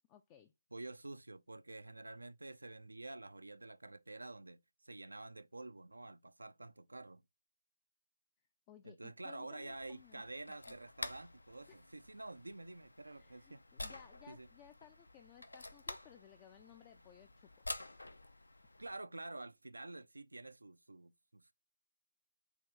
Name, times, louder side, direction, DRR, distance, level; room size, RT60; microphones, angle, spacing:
voice 1, 0.1-0.5 8.7-10.2 11.7-11.8 13.1-17.6, left 10 dB, 20° left, 0.3 m, -60 dB
voice 2, 0.7-7.2 8.8-13.6 14.3-14.5 18.8-21.5, right 2 dB, 75° right, 0.3 m, -49 dB
sound 1, 9.6-18.9, left 2 dB, 75° left, 0.6 m, -50 dB
4.5 x 3.0 x 3.3 m
figure-of-eight pair, 150°, 0 cm